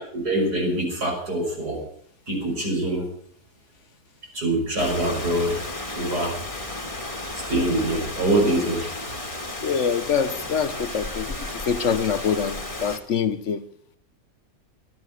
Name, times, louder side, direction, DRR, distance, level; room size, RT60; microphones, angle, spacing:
voice 1, 0.1-1.8 2.3-3.1 4.3-5.6 5.9-6.4 7.5-8.9, right 1 dB, 70° right, 6.8 m, -24 dB
Rain, 4.8-13.0, left 2 dB, 20° left, 2.0 m, -33 dB
voice 2, 9.6-13.6, left 7 dB, 55° left, 1.1 m, -25 dB
13.0 x 12.5 x 8.1 m
omnidirectional pair, 1.7 m